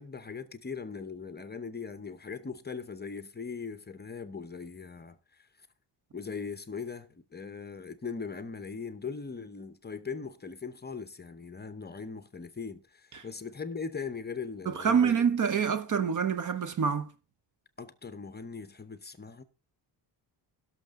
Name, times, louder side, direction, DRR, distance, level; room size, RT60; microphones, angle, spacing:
voice 1, 0.0-5.7 6.1-15.2 17.8-19.4, left 5 dB, 20° left, 0.8 m, -40 dB
voice 2, 14.7-17.1, right 7 dB, 45° right, 0.9 m, -26 dB
17.5 x 6.5 x 3.7 m
wide cardioid pair, 155°, 44 cm